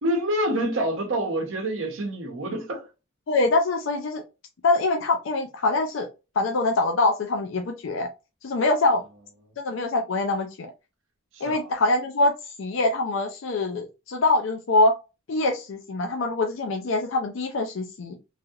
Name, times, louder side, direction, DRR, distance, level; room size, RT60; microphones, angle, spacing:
voice 1, 0.0-2.9 11.3-11.7, right 1 dB, 70° right, 0.8 m, -27 dB
voice 2, 3.3-4.2 4.6-6.1 6.4-8.1 8.4-9.0 9.6-10.7 11.4-14.9 15.3-18.2, left 2 dB, 65° left, 0.4 m, -24 dB
3.2 x 2.7 x 2.3 m
head